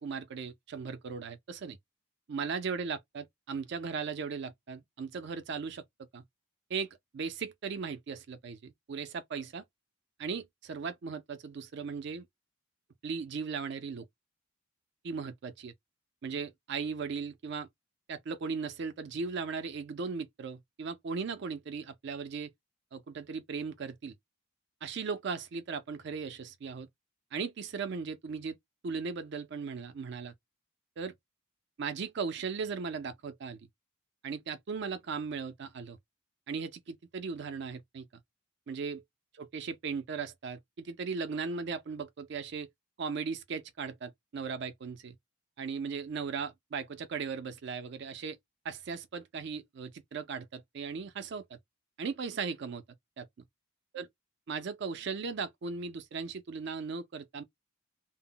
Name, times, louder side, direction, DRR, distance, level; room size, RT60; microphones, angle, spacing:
voice 1, 0.0-1.8 2.3-5.8 6.1-6.2 6.7-9.6 10.2-12.2 13.0-14.0 15.0-15.7 16.2-17.7 18.1-22.5 22.9-24.1 24.8-26.9 27.3-28.6 28.8-30.3 31.0-31.1 31.8-33.6 34.2-36.0 36.5-38.1 38.7-39.0 39.4-42.7 43.0-45.1 45.6-48.4 48.6-51.6 52.0-52.8 53.2-53.3 53.9-54.1 54.5-57.4, right 5 dB, 55° right, 0.4 m, -37 dB
2.0 x 2.0 x 3.6 m
head